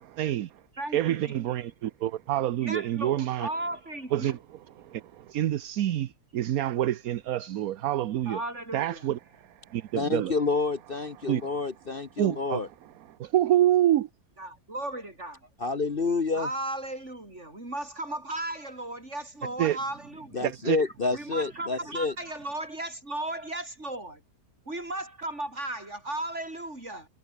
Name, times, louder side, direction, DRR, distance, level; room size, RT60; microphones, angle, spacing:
voice 1, 0.2-0.6 0.9-3.5 4.1-4.4 4.8-8.4 8.7-9.2 9.5-10.3 11.3-11.6 12.2-12.6 13.1-14.1 19.6-19.8 20.4-20.8, right 12 dB, 70° right, 1.1 m, -27 dB
voice 2, 0.8-1.4 2.6-4.4 8.3-9.1 14.4-15.5 16.3-20.5 21.1-24.2 24.7-27.1, right 1 dB, 45° right, 7.3 m, -36 dB
voice 3, 9.9-12.7 15.6-16.5 20.3-22.1, left 4 dB, 35° left, 1.3 m, -28 dB
omnidirectional pair, 1.7 m